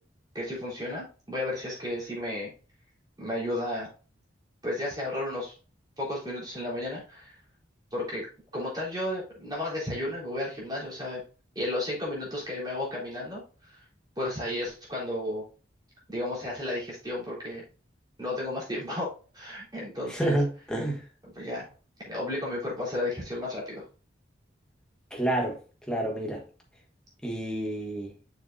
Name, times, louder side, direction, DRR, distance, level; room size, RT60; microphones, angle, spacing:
voice 1, 0.3-2.5 3.2-3.9 4.6-5.5 6.0-7.3 7.9-8.3 8.5-11.2 11.6-13.8 14.2-15.4 16.1-17.6 18.2-20.4 21.3-21.7 22.1-23.8, left 1 dB, 20° right, 3.9 m, -33 dB
voice 2, 20.1-21.0 25.1-25.6 25.9-26.4 27.2-28.1, right 1 dB, 5° left, 1.4 m, -29 dB
6.6 x 6.6 x 2.6 m
head